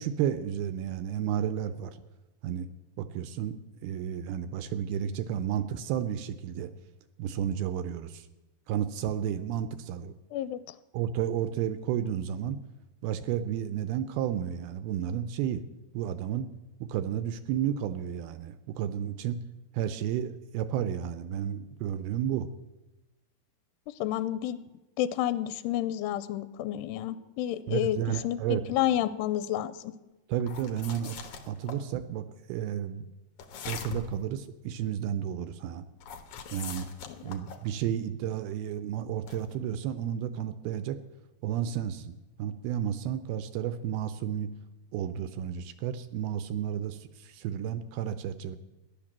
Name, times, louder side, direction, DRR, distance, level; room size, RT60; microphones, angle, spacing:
voice 1, 0.0-2.0 2.4-2.7 3.0-6.7 7.2-8.3 8.7-10.1 10.9-12.6 13.0-15.6 15.9-16.5 16.8-19.4 19.7-22.5 27.7-28.6 30.3-31.2 31.4-33.1 33.7-35.8 36.5-36.9 37.2-41.0 41.4-42.1 42.4-44.5 44.9-48.6, right 10 dB, 80° right, 11 dB, 2.4 m, -32 dB
voice 2, 10.3-10.8 24.0-24.6 25.0-29.9, left 12 dB, 85° left, 14 dB, 2.7 m, -30 dB
sound 1, 30.4-31.8 33.4-34.2 36.0-37.7 39.3-39.5, left 6 dB, 65° left, 2.1 m, -42 dB
13.5 x 11.0 x 7.3 m, 1.1 s
omnidirectional pair, 4.9 m